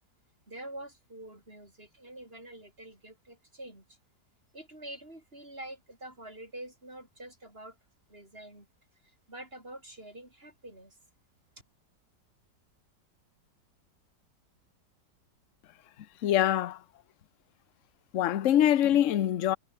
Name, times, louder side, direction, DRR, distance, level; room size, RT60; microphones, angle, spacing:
voice 1, 0.5-4.0 4.5-7.8 8.1-8.7 9.0-11.0, right 1 dB, 30° right, 8.1 m, -46 dB
voice 2, 16.2-16.8 18.1-19.6, left 11 dB, 55° left, 1.0 m, -24 dB
omnidirectional pair, 1.9 m